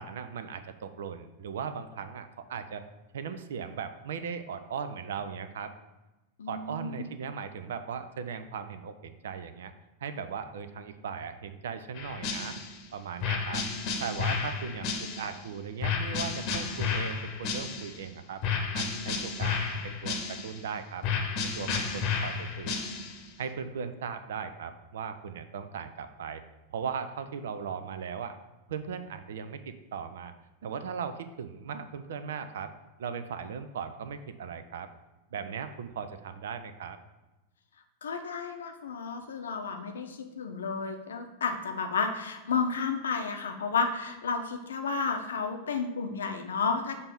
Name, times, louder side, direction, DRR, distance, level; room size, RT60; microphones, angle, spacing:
voice 1, 0.0-2.8 3.1-5.7 6.5-9.7 10.0-12.6 12.9-13.6 14.0-18.4 18.7-21.0 21.4-22.8 23.4-26.4 26.7-28.4 28.7-30.3 30.6-32.7 33.0-34.9 35.3-37.0, right 6 dB, 60° right, 10 dB, 0.4 m, -38 dB
voice 2, 6.4-7.0 38.0-47.0, left 5 dB, 65° left, 5 dB, 0.6 m, -32 dB
sound 1, 12.0-12.8 13.2-15.4 15.8-18.0 18.4-20.6 21.0-23.3, left 5 dB, 40° left, 0.9 m, -32 dB
6.9 x 2.7 x 5.1 m, 1.1 s
figure-of-eight pair, 90°, 0 cm